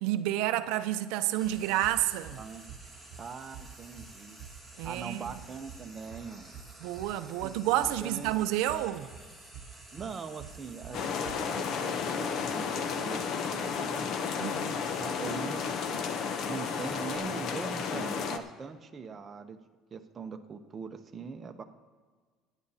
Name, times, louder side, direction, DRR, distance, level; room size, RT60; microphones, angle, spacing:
voice 1, 0.0-2.4 4.8-5.4 6.8-9.1 14.4-14.9, right 13 dB, 85° right, 0.5 m, -30 dB
Frying (food), 1.3-17.2, right 1 dB, 5° left, 1.8 m, -52 dB
sound 1, 1.4-11.3, right 7 dB, 50° right, 0.9 m, -49 dB
voice 2, 3.2-4.4 4.8-6.5 7.4-8.3 9.9-13.2 13.5-14.6 15.0-15.7 16.5-19.6 19.9-21.6, right 5 dB, 25° right, 0.7 m, -42 dB
sound 2, 10.9-18.4, left 6 dB, 50° left, 0.7 m, -32 dB
24.5 x 9.9 x 2.8 m
cardioid pair, 150°, 0 cm